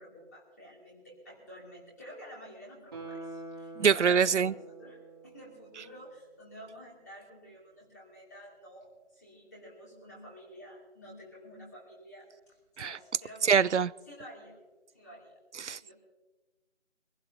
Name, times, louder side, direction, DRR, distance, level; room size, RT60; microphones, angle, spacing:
voice 1, 0.0-12.3 12.7-13.6 14.1-14.6 14.9-15.3 15.8-15.9, equal, 15° left, 2.8 m, -50 dB
Guitar, 2.9-6.2 6.5-6.6, right 3 dB, 20° right, 2.3 m, -46 dB
voice 2, 3.8-4.5 12.8-13.0 13.5-13.9 15.6-15.9, right 6 dB, 75° right, 0.6 m, -24 dB
24.0 x 15.5 x 2.8 m
figure-of-eight pair, 170°, 35 cm